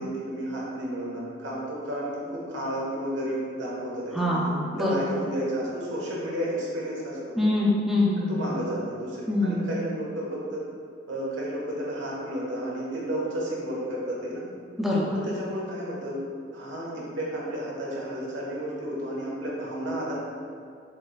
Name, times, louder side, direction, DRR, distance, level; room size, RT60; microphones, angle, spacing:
voice 1, 0.0-4.5 4.8-7.4 8.3-10.6 11.1-14.4 15.1-20.1, equal, 85° right, -5 dB, 1.2 m, -32 dB
voice 2, 4.1-5.0 7.4-8.5 9.3-9.7 14.8-15.2, left 1 dB, ahead, -6 dB, 0.5 m, -24 dB
7.0 x 3.2 x 2.3 m, 2.3 s
head